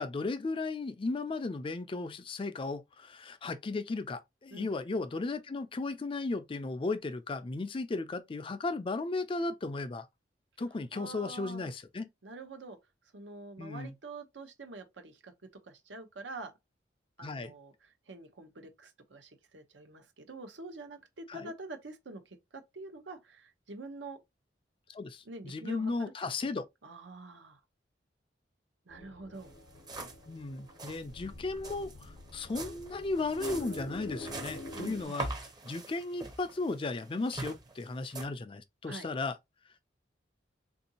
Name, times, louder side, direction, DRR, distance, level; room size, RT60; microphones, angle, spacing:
voice 1, 0.0-10.1 10.6-12.1 13.6-14.0 17.2-17.5 21.3-21.5 24.9-26.6 30.3-35.3 35.6-39.4, left 3 dB, 30° left, 0.4 m, -35 dB
voice 2, 10.9-11.7 12.2-12.8 13.1-15.3 15.6-16.5 17.2-17.7 18.1-24.2 25.2-26.1 26.8-27.6 28.9-29.5 34.7-35.2 38.8-39.1, right 2 dB, 85° right, 0.8 m, -46 dB
sound 1, 28.9-35.0, left 2 dB, 70° left, 0.7 m, -46 dB
sound 2, 29.4-29.5 29.7-30.3 30.6-31.0 31.6-38.3, right 3 dB, 25° right, 0.7 m, -43 dB
3.7 x 2.6 x 2.8 m
head